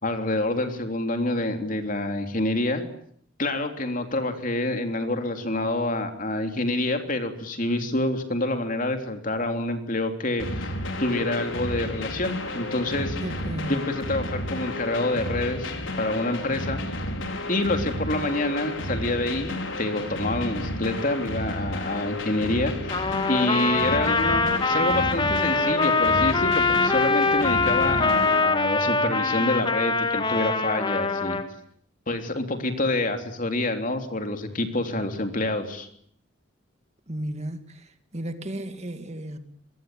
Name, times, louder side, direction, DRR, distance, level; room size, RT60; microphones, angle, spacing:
voice 1, 0.0-2.8 3.4-10.7 11.0-16.8 17.5-31.4 32.1-35.9, left 2 dB, 45° left, 3.5 m, -27 dB
sound 1, 10.4-28.4, left 1 dB, 80° left, 5.4 m, -32 dB
voice 2, 13.2-13.9 37.1-37.7 38.1-39.4, right 1 dB, 35° right, 2.3 m, -33 dB
Trumpet, 22.9-31.4, left 3 dB, 25° left, 2.1 m, -23 dB
25.5 x 22.5 x 9.4 m
head